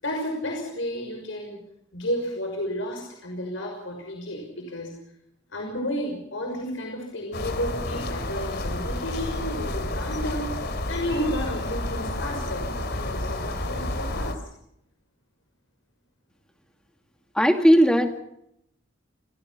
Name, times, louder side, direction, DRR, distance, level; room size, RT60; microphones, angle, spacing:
voice 1, 0.0-1.6 1.9-5.0 5.5-14.4, equal, 75° left, 1 dB, 6.0 m, -32 dB
sound 1, 7.3-14.4, left 1 dB, 55° left, 3.2 m, -30 dB
voice 2, 17.3-18.2, equal, 5° left, 5 dB, 2.3 m, -17 dB
28.0 x 17.5 x 5.7 m, 0.76 s
head